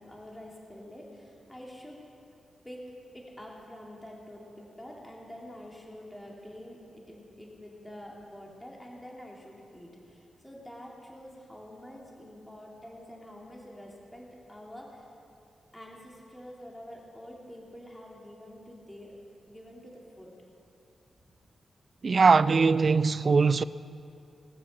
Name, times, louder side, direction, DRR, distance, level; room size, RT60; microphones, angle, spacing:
voice 1, 0.0-2.0 2.6-2.8 3.1-15.1 15.7-19.1 19.5-20.3, equal, 10° left, 2.7 m, -47 dB
voice 2, 22.0-23.6, right 4 dB, 50° right, 0.3 m, -21 dB
19.5 x 6.8 x 6.5 m
cardioid pair, 65°, 0 cm